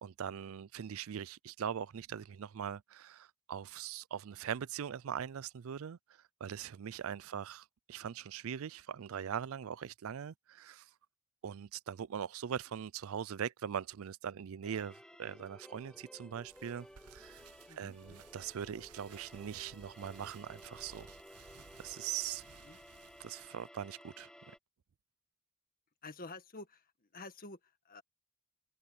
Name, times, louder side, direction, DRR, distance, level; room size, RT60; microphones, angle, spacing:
voice 1, 0.0-6.0 6.4-10.8 11.4-16.9 17.1-17.4 17.8-21.1 21.8-22.4 23.2-24.3, right 8 dB, 65° right, 0.4 m, -41 dB
sound 1, 14.6-24.6, equal, 5° left, 0.6 m, -56 dB
sound 2, 16.4-23.5, right 6 dB, 90° right, 0.8 m, -59 dB
voice 2, 17.7-18.2 22.6-22.8 26.0-28.0, left 3 dB, 40° left, 1.8 m, -50 dB
head